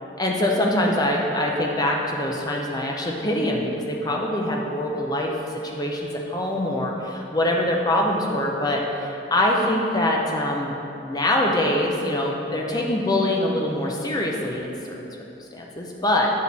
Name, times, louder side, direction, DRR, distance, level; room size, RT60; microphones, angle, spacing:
voice 1, 0.2-5.3 5.6-6.0 6.3-10.7 11.0-15.1 15.5-16.3, left 1 dB, 20° left, -1 dB, 0.7 m, -24 dB
10.0 x 4.4 x 3.5 m, 2.9 s
head